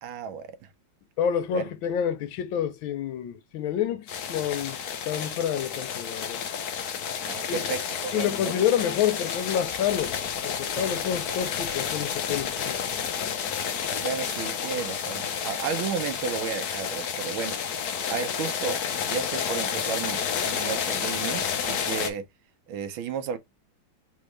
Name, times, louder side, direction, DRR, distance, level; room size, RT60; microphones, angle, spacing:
voice 1, 0.0-0.7 1.5-1.6 7.2-8.6 10.7-11.2 14.0-18.8 19.1-22.3 22.7-23.4, right 7 dB, 85° right, 1.6 m, -33 dB
voice 2, 1.2-4.8 5.1-6.4 7.5-7.6 8.1-10.2 10.4-12.9, left 9 dB, 80° left, 1.5 m, -28 dB
sound 1, 4.1-22.1, left 7 dB, 60° left, 1.2 m, -30 dB
4.1 x 3.6 x 3.2 m
omnidirectional pair, 2.1 m